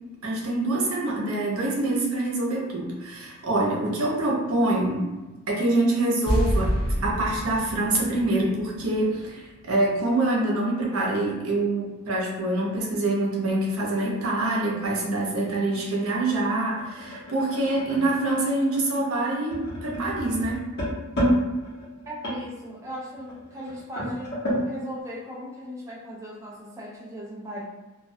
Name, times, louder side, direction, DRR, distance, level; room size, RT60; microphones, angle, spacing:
voice 1, 0.2-5.1 5.5-6.7 7.0-20.7, right 2 dB, 70° right, -2 dB, 0.6 m, -25 dB
sound 1, 6.3-9.5 9.7-9.8, equal, 25° left, 0.7 m, -28 dB
sound 2, 15.3-24.7, equal, 50° left, 0.9 m, -31 dB
voice 2, 22.1-24.4 24.6-27.6, equal, 15° right, -4 dB, 0.3 m, -38 dB
2.3 x 2.1 x 2.6 m, 1.2 s
head